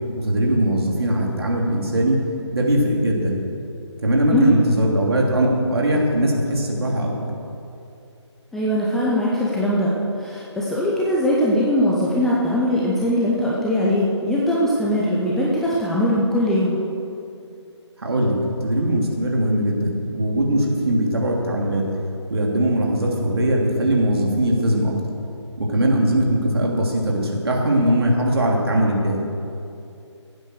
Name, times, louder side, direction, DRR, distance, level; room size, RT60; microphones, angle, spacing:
voice 1, 0.2-2.2 2.5-3.3 4.0-7.3 18.0-18.3 18.6-21.8 22.3-24.9 25.6-29.2, right 1 dB, 55° right, -1 dB, 3.1 m, -20 dB
voice 2, 8.5-9.9 10.2-16.8, equal, ahead, -6 dB, 0.6 m, -20 dB
16.5 x 8.8 x 6.5 m, 2.6 s
figure-of-eight pair, 150°, 15 cm